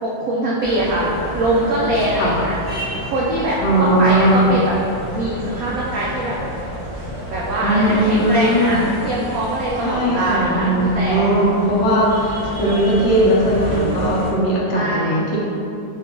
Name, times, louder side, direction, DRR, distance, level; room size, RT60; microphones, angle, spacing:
voice 1, 0.0-4.7 5.1-6.4 7.3-11.3 14.7-15.2, right 1 dB, 80° right, -6 dB, 0.8 m, -22 dB
sound 1, 0.6-14.3, equal, 30° right, 1.5 m, -31 dB
voice 2, 3.6-4.5 7.6-8.8 9.8-15.4, right 1 dB, 75° left, -5 dB, 1.5 m, -18 dB
4.8 x 2.4 x 3.6 m, 2.8 s
omnidirectional pair, 2.1 m